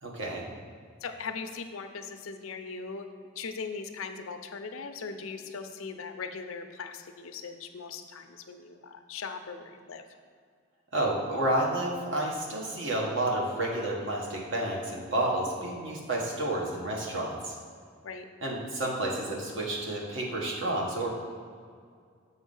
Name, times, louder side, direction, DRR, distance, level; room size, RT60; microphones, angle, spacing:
voice 1, 0.0-0.4 10.9-17.5 18.4-21.1, right 1 dB, 65° right, -2 dB, 1.3 m, -30 dB
voice 2, 1.0-3.1 3.4-10.0 18.0-18.3, left 5 dB, 90° left, 7 dB, 0.6 m, -39 dB
7.1 x 4.0 x 5.4 m, 2.1 s
head